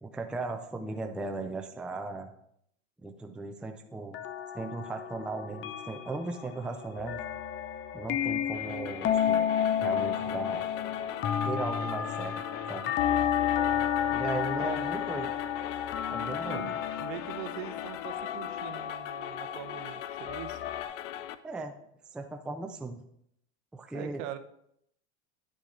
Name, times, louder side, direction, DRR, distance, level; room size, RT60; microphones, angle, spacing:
voice 1, 0.0-2.3 3.0-4.2 4.5-7.2 7.9-9.5 9.8-10.6 11.4-12.4 12.7-12.9 14.1-15.3 16.1-16.7 21.4-21.7 22.1-23.0 23.7-24.2, right 3 dB, 5° right, 4 dB, 0.4 m, -37 dB
sound 1, 4.1-20.8, left 9 dB, 30° left, 0.7 m, -32 dB
sound 2, 8.5-21.4, left 12 dB, 90° left, 0.7 m, -41 dB
voice 2, 14.5-15.0 16.4-20.6 23.9-24.4, right 12 dB, 60° right, 9 dB, 1.0 m, -42 dB
9.9 x 6.3 x 3.9 m, 0.73 s
supercardioid pair, 135°, 36 cm